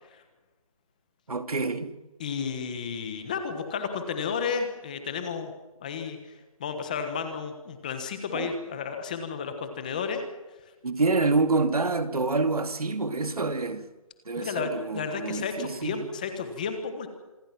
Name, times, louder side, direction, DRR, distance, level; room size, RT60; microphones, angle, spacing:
voice 1, 1.3-1.9 8.3-8.5 10.8-13.9 14.3-16.1, right 3 dB, 85° right, 2.5 m, -27 dB
voice 2, 2.2-5.5 5.8-6.2 6.6-10.2 14.4-17.1, left 6 dB, 15° left, 1.3 m, -32 dB
26.5 x 22.0 x 6.0 m
hypercardioid pair, 175°, 18 cm